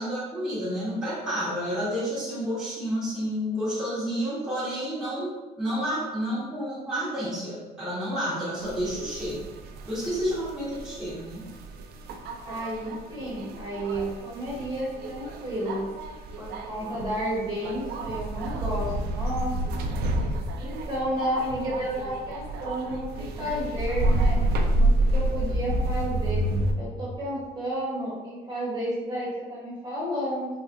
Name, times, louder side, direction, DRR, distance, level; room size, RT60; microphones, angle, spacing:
voice 1, 0.0-5.3 5.6-9.4 9.9-11.4, equal, ahead, -11 dB, 1.1 m, -30 dB
sound 1, 8.6-26.7, right 1 dB, 70° right, 0.4 m, -29 dB
voice 2, 12.4-15.8 16.4-19.5 20.6-23.0 23.4-26.4 26.7-30.5, right 1 dB, 25° right, -6 dB, 1.3 m, -31 dB
3.5 x 2.3 x 2.5 m, 1.1 s
cardioid pair, 110°, 17 cm